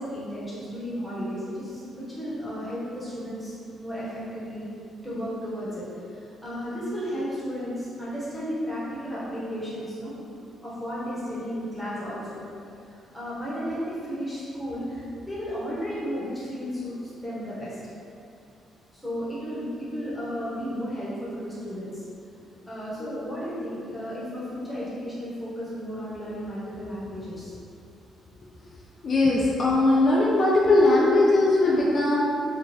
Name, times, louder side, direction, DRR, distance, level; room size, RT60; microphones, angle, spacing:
voice 1, 0.0-3.5 3.8-4.6 5.0-5.8 6.1-10.1 10.6-12.4 12.9-17.0 17.2-17.8 18.9-22.0 22.7-27.6, equal, 5° left, -10 dB, 1.1 m, -33 dB
voice 2, 29.0-32.4, left 2 dB, 50° left, -5 dB, 0.4 m, -20 dB
2.8 x 2.3 x 3.0 m, 2.5 s
cardioid pair, 90°, 0 cm